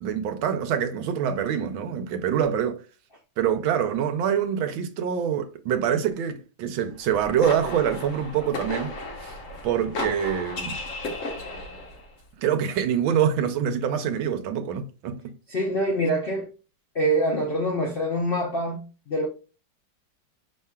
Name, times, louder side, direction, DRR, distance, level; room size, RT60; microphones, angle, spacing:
voice 1, 0.0-2.8 3.4-8.9 9.2-9.3 9.6-10.8 12.4-15.2, right 8 dB, 80° right, 1.5 m, -25 dB
sound 1, 7.0-12.1, left 2 dB, 50° left, 1.2 m, -34 dB
voice 2, 15.5-16.5 16.9-19.3, right 1 dB, 85° left, 0.5 m, -25 dB
5.5 x 3.5 x 2.3 m
omnidirectional pair, 2.2 m